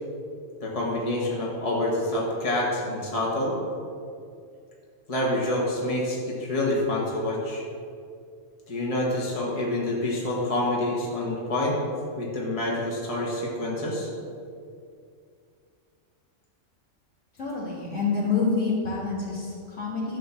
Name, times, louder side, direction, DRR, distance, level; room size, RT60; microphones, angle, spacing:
voice 1, 0.6-3.5 5.1-7.6 8.7-11.8 12.2-14.1, left 1 dB, 30° left, -4 dB, 1.6 m, -27 dB
voice 2, 17.4-20.2, left 4 dB, 75° left, -6 dB, 2.7 m, -27 dB
11.5 x 3.8 x 7.1 m, 2.3 s
omnidirectional pair, 1.3 m